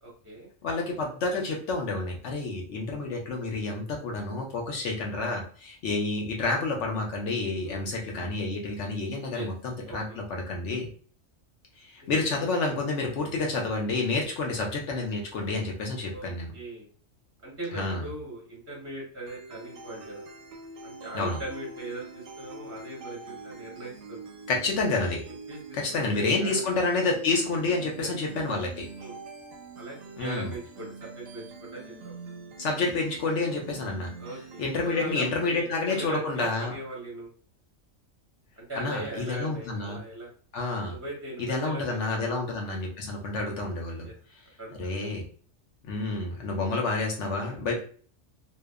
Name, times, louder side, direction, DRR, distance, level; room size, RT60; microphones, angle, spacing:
voice 1, 0.0-0.5 7.6-7.9 9.3-9.5 9.9-10.2 12.1-12.3 16.1-16.9 17.4-20.2 20.8-24.3 25.3-26.7 26.9-27.1 28.0-28.1 28.9-29.1 29.8-32.1 34.2-37.3 38.6-40.3 40.9-42.4 44.0-44.1 44.6-45.1, right 1 dB, 15° right, -4 dB, 0.6 m, -40 dB
voice 2, 0.6-10.9 11.8-16.5 17.7-18.0 21.1-21.4 24.5-25.2 25.7-28.9 30.2-30.5 32.6-34.1 34.6-36.7 38.8-40.0 40.5-40.9 41.4-44.1 44.8-45.2 45.8-47.8, left 3 dB, 65° left, 0 dB, 0.9 m, -29 dB
sound 1, 19.3-35.3, right 4 dB, 80° right, 1.0 m, -45 dB
2.8 x 2.1 x 2.3 m, 0.43 s
omnidirectional pair, 1.4 m